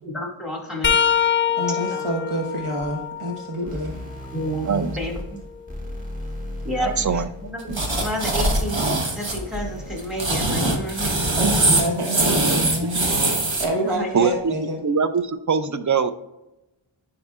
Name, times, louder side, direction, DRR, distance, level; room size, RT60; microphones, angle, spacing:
voice 1, 0.0-0.9 1.7-2.0 4.3-4.7 5.0-5.4 6.6-11.2 13.7-14.1, equal, ahead, -1 dB, 2.0 m, -31 dB
sound 1, 0.8-4.6 5.1-7.1 10.0-10.2 11.4-11.6 12.9-13.0, left 8 dB, 25° left, 0.4 m, -26 dB
voice 2, 1.6-4.0 4.6-5.0 11.4-13.3 13.6-14.8, equal, 80° right, 0 dB, 1.3 m, -27 dB
sound 2, 3.7-11.7, left 1 dB, 15° right, 1.6 m, -36 dB
voice 3, 6.8-7.3 7.7-7.8 14.1-14.5 14.8-16.1, right 5 dB, 40° right, 11 dB, 0.5 m, -22 dB
sound 3, 7.7-9.4 10.0-13.7, right 2 dB, 65° right, 1.2 m, -22 dB
9.7 x 4.9 x 2.4 m, 0.93 s
wide cardioid pair, 45°, 50 cm